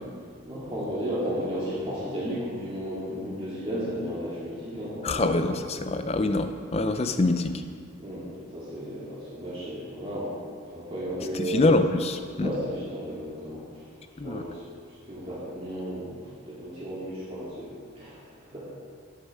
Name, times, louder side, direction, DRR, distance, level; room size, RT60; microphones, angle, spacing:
voice 1, 0.4-5.3 8.0-10.4 10.7-11.7 12.4-13.8 14.2-14.6 14.9-18.7, equal, 25° right, -9 dB, 2.4 m, -34 dB
voice 2, 5.0-7.6 11.3-12.5 14.2-14.4, left 2 dB, 30° left, 8 dB, 0.5 m, -25 dB
12.5 x 6.9 x 4.8 m, 2.1 s
head